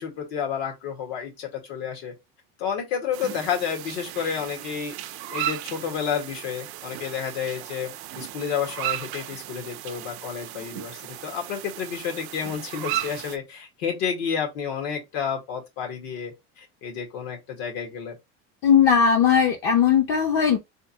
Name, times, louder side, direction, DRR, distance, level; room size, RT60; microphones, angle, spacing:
voice 1, 0.0-2.1 2.6-5.0 5.3-18.2, left 7 dB, 85° left, 1.7 m, -30 dB
sound 1, 3.1-13.4, right 14 dB, 45° right, 0.4 m, -35 dB
voice 2, 18.6-20.6, left 7 dB, 45° left, 0.6 m, -18 dB
3.5 x 2.7 x 2.8 m
cardioid pair, 140°, 32 cm